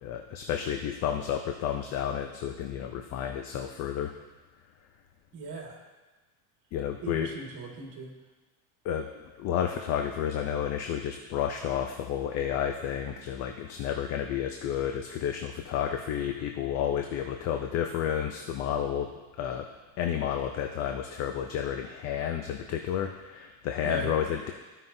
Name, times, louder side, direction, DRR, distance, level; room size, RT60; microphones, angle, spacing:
voice 1, 0.0-4.1 6.7-7.3 8.8-9.1 9.4-19.1 19.4-19.6 20.0-24.5, left 9 dB, 35° left, 4 dB, 0.4 m, -31 dB
voice 2, 5.3-5.8 7.0-8.1 23.8-24.3, right 3 dB, 45° right, 0 dB, 2.0 m, -38 dB
14.5 x 5.6 x 2.7 m, 1.2 s
cardioid pair, 145°, 46 cm